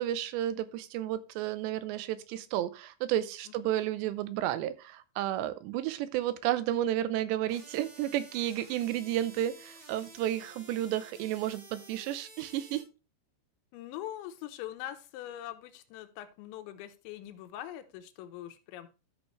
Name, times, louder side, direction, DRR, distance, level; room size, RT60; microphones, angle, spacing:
voice 1, 0.0-12.8, right 12 dB, 80° right, 14 dB, 2.9 m, -32 dB
sound 1, 7.5-12.8, right 2 dB, 45° right, 5.4 m, -52 dB
voice 2, 13.7-18.9, left 12 dB, 85° left, 8 dB, 3.3 m, -42 dB
13.0 x 6.0 x 3.1 m, 0.31 s
omnidirectional pair, 5.1 m